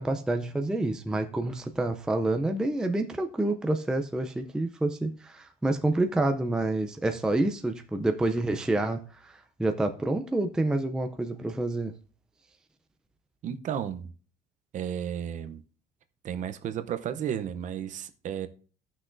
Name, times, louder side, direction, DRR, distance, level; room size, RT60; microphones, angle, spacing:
voice 1, 0.0-11.9, right 2 dB, 5° right, 0.4 m, -28 dB
voice 2, 13.4-14.1 14.7-15.6 16.2-18.5, right 9 dB, 45° right, 0.7 m, -33 dB
16.5 x 6.1 x 2.6 m
cardioid pair, 165°, 18 cm